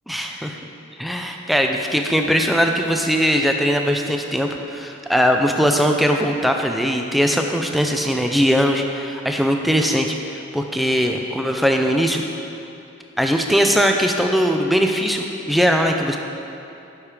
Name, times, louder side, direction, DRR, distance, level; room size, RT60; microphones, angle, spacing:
voice 1, 0.1-0.6 1.0-12.2 13.2-16.2, equal, ahead, 3 dB, 0.5 m, -20 dB
11.5 x 6.4 x 4.9 m, 2.8 s
head